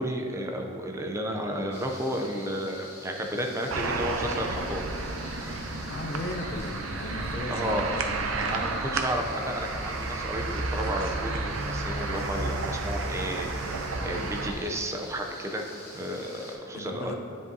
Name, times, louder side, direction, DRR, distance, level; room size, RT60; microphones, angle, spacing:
voice 1, 0.0-4.8 7.5-8.0 8.5-15.7 15.9-17.1, equal, 15° right, 2 dB, 0.5 m, -32 dB
sound 1, 1.7-16.5, left 1 dB, 15° left, 1.5 m, -46 dB
sound 2, 3.7-14.5, right 3 dB, 85° right, 0.6 m, -32 dB
voice 2, 5.9-8.6 16.7-17.1, left 1 dB, 50° left, 4 dB, 0.6 m, -36 dB
9.8 x 5.2 x 2.7 m, 2.5 s
head